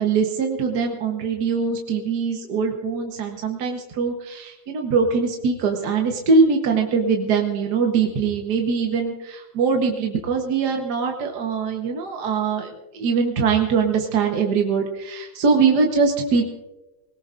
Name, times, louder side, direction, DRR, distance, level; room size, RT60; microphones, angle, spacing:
voice 1, 0.0-16.4, right 5 dB, 55° right, 2 dB, 1.6 m, -22 dB
21.0 x 18.5 x 2.5 m, 1.1 s
omnidirectional pair, 2.2 m